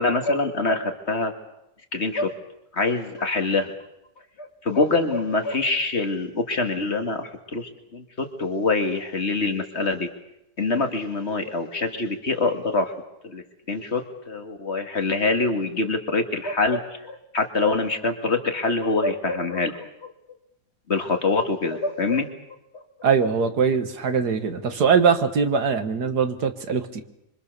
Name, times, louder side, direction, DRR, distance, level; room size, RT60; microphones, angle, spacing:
voice 1, 0.0-1.3 1.9-2.4 2.7-3.7 4.4-10.1 10.6-12.9 13.2-13.4 13.7-20.1 20.9-22.3 24.7-24.8, left 3 dB, 40° left, 6 dB, 2.5 m, -25 dB
voice 2, 23.0-27.0, right 6 dB, 75° right, 8 dB, 2.1 m, -22 dB
26.0 x 25.0 x 6.8 m, 0.85 s
omnidirectional pair, 1.7 m